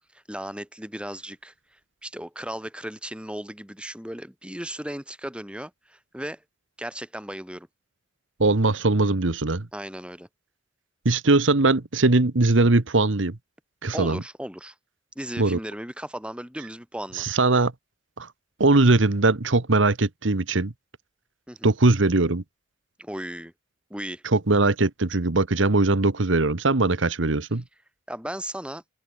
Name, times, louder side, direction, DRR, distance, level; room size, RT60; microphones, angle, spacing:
voice 1, 0.0-6.4 6.8-7.7 9.7-10.3 13.9-14.8 15.2-17.3 21.5-21.7 23.0-23.5 23.9-24.2 28.1-28.8, right 1 dB, 5° right, 3.6 m, -36 dB
voice 2, 8.4-9.7 11.0-13.4 13.8-14.2 15.4-15.6 17.1-17.7 18.2-18.3 18.6-20.7 21.6-22.4 24.2-27.6, right 2 dB, 80° right, 1.3 m, -20 dB
head